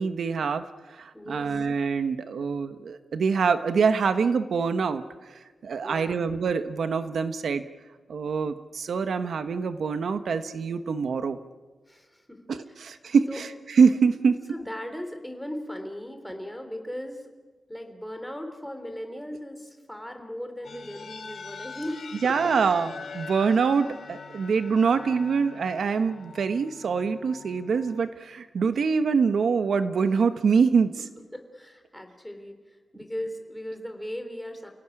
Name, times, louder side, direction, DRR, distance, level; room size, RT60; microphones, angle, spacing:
voice 1, 0.0-5.0 5.6-7.6 8.1-11.4 12.5-14.4 22.2-30.9, right 5 dB, 75° right, 10 dB, 1.2 m, -25 dB
voice 2, 1.1-1.7 5.8-6.2 11.9-12.4 12.7-12.8 13.3-13.4 14.5-17.2 17.7-22.5 31.3-32.6 32.9-34.7, equal, 5° left, 5 dB, 3.4 m, -37 dB
sound 1, 20.6-28.0, left 5 dB, 65° left, 4.7 m, -43 dB
29.5 x 17.5 x 9.9 m, 1.3 s
wide cardioid pair, 150°, 0 cm